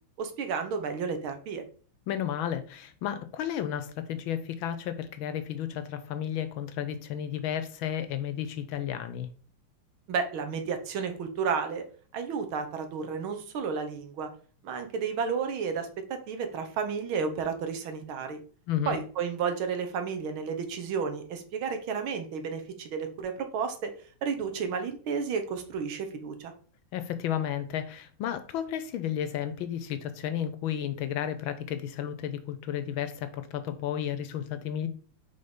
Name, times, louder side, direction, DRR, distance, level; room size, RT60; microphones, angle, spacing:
voice 1, 0.2-1.6 10.1-11.8 12.1-14.3 14.6-18.4 18.9-23.9 24.2-26.5, right 6 dB, 70° right, 1.8 m, -32 dB
voice 2, 2.1-9.3 18.7-19.0 26.9-34.9, left 10 dB, 75° left, 1.3 m, -32 dB
5.5 x 4.0 x 5.1 m
omnidirectional pair, 2.4 m